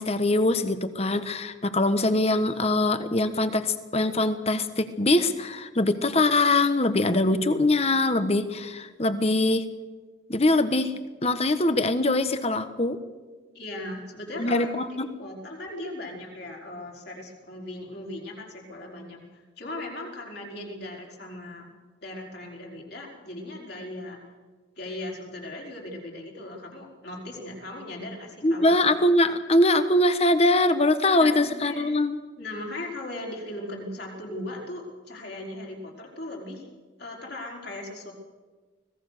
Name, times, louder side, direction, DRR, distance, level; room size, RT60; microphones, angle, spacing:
voice 1, 0.0-9.7 10.3-10.9 11.2-13.0 14.4-15.1 28.4-32.2, left 2 dB, 30° left, 11 dB, 1.2 m, -23 dB
voice 2, 13.5-21.7 22.0-24.2 24.8-28.9 31.2-31.9 32.4-36.7 37.0-38.1, left 1 dB, 55° left, -1 dB, 4.8 m, -38 dB
25.0 x 17.5 x 6.7 m, 1.4 s
head